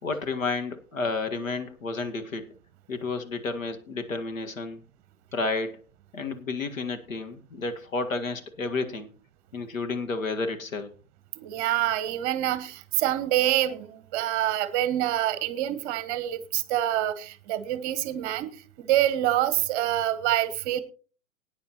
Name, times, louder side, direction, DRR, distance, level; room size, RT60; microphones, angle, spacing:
voice 1, 0.0-2.5 2.9-4.8 5.3-5.8 6.1-9.1 9.5-10.9, left 3 dB, 70° left, 8 dB, 1.8 m, -31 dB
voice 2, 11.4-20.8, right 13 dB, 30° right, 16 dB, 1.0 m, -26 dB
18.5 x 9.6 x 2.9 m, 0.37 s
figure-of-eight pair, 120°, 41 cm